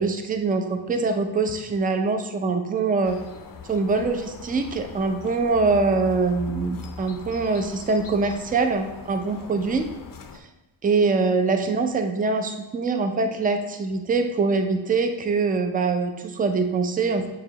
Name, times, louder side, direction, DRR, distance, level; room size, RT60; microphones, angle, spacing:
voice 1, 0.0-3.2 3.7-9.9 10.8-17.3, right 4 dB, 20° right, 6 dB, 0.4 m, -23 dB
sound 1, 3.0-10.4, left 5 dB, 45° left, 0.5 m, -41 dB
6.9 x 4.7 x 2.9 m, 1.1 s
wide cardioid pair, 120°, 49 cm